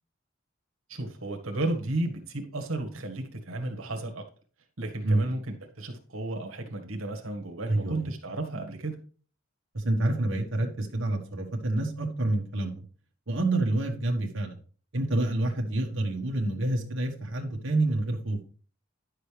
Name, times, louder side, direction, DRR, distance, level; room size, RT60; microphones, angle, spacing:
voice 1, 0.9-4.2 4.8-9.0, right 2 dB, 80° right, 3 dB, 1.6 m, -33 dB
voice 2, 7.7-8.1 9.7-12.8 13.3-14.6 14.9-18.4, right 2 dB, 65° right, 0 dB, 1.4 m, -28 dB
10.5 x 6.6 x 3.4 m, 0.41 s
head